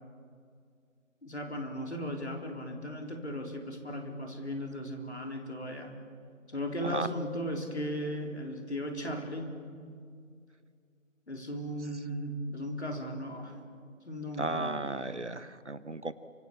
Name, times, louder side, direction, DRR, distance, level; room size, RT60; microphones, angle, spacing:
voice 1, 1.2-5.9 6.5-9.5 11.3-13.6 14.1-14.7, equal, 55° left, 3 dB, 3.8 m, -36 dB
voice 2, 14.4-16.1, right 2 dB, 55° right, 14 dB, 1.1 m, -34 dB
29.0 x 25.5 x 7.2 m, 2.2 s
figure-of-eight pair, 175°, 41 cm